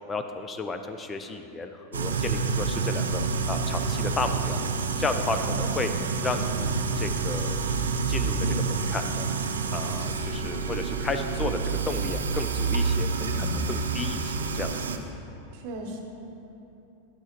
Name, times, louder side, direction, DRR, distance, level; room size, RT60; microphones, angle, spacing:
voice 1, 0.0-3.2 3.5-4.6 5.0-5.9 6.2-7.6 8.1-9.3 9.7-11.6 11.9-14.7, left 4 dB, 20° left, 7 dB, 0.3 m, -33 dB
sound 1, 1.9-15.0, right 4 dB, 70° right, 0.4 m, -28 dB
voice 2, 5.4-6.0 13.3-13.6 15.5-16.0, right 1 dB, 45° right, 3 dB, 0.9 m, -39 dB
9.5 x 7.8 x 3.0 m, 2.9 s
figure-of-eight pair, 90°, 0 cm